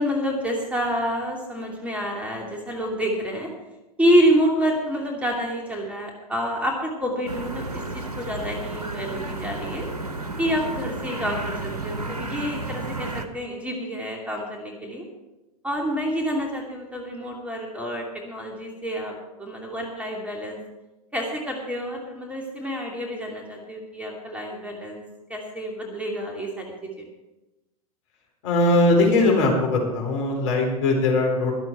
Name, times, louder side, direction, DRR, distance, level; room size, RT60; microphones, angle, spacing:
voice 1, 0.0-3.5 4.0-9.9 10.4-15.1 15.6-19.1 19.4-20.6 21.1-25.0 25.3-27.1, equal, 5° right, 0 dB, 2.7 m, -27 dB
sound 1, 7.3-13.3, right 2 dB, 85° right, 1.1 m, -32 dB
voice 2, 28.4-31.5, left 2 dB, 50° left, 1 dB, 4.1 m, -20 dB
22.5 x 7.6 x 4.5 m, 1.0 s
figure-of-eight pair, 100°, 19 cm